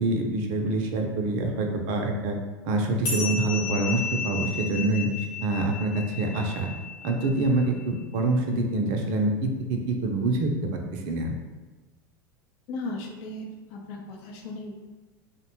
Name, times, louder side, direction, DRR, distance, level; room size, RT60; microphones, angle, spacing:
voice 1, 0.0-2.4 2.6-5.1 5.4-6.7 7.0-10.5 10.9-11.3, right 2 dB, 55° right, 3 dB, 0.5 m, -26 dB
sound 1, 3.0-7.9, left 5 dB, 70° left, 0.9 m, -34 dB
voice 2, 12.7-14.7, left 2 dB, 55° left, 1 dB, 0.5 m, -36 dB
2.6 x 2.1 x 2.8 m, 1.2 s
hypercardioid pair, 85°, 12 cm